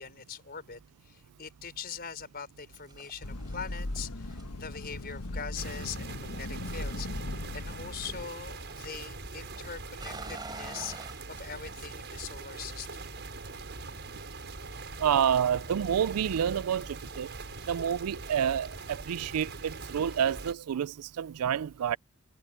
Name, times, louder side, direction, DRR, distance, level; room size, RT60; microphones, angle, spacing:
voice 1, 0.0-13.0, left 6 dB, 45° left, 4.6 m, -42 dB
sound 1, 2.7-7.6 7.9-8.9 9.2-12.6 12.9-15.4 15.6-17.3, right 3 dB, 20° right, 5.4 m, -50 dB
sound 2, 3.2-8.2, left 2 dB, 85° left, 1.4 m, -38 dB
sound 3, 5.5-20.5, right 3 dB, 50° right, 6.5 m, -42 dB
voice 2, 15.0-17.3 17.7-22.0, right 8 dB, 80° right, 0.4 m, -29 dB
head